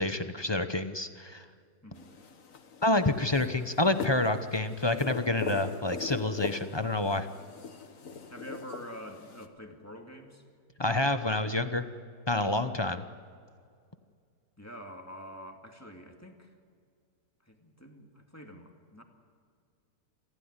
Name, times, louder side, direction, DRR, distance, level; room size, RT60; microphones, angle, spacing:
voice 1, 0.0-1.4 2.8-7.3 10.8-11.9 12.3-13.0, left 2 dB, 25° left, 10 dB, 0.5 m, -28 dB
voice 2, 1.8-2.2 8.3-10.4 14.6-16.5 17.5-19.0, equal, 10° left, 3 dB, 2.3 m, -46 dB
sound 1, 1.9-9.5, left 5 dB, 50° left, 1.7 m, -41 dB
28.5 x 15.5 x 9.7 m, 2.2 s
omnidirectional pair, 1.9 m